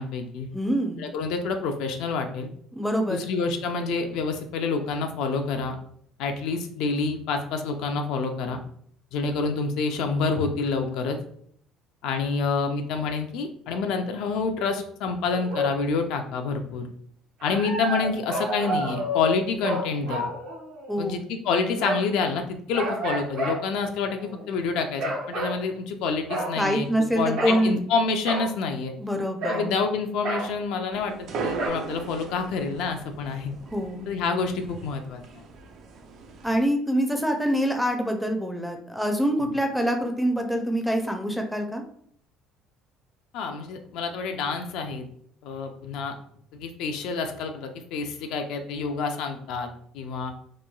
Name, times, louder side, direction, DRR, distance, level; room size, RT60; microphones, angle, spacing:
voice 1, 0.0-0.5 1.0-2.5 3.1-5.8 6.2-8.6 9.1-11.2 12.0-16.9 17.4-20.3 21.0-26.9 27.2-28.9 29.5-33.5 34.1-35.2 39.4-39.5 43.3-45.0 45.4-46.2 46.5-49.7 49.9-50.3, left 4 dB, 75° left, 5 dB, 0.3 m, -28 dB
voice 2, 0.5-1.0 2.7-3.3 20.9-21.2 26.6-27.8 29.0-29.7 33.7-34.1 36.4-41.8, equal, ahead, 3 dB, 0.4 m, -25 dB
sound 1, 15.3-15.8 17.4-21.1 21.8-22.2 22.7-23.6 24.1-24.4 25.0-25.6 26.3-26.6 27.4-27.7 28.2-28.5 29.4-29.7 30.2-30.5 31.6-31.7, equal, 75° right, 0.8 m, -30 dB
sound 2, 30.9-36.7, right 4 dB, 60° right, 0.4 m, -38 dB
2.9 x 2.2 x 2.3 m, 0.64 s
cardioid pair, 105°, 0 cm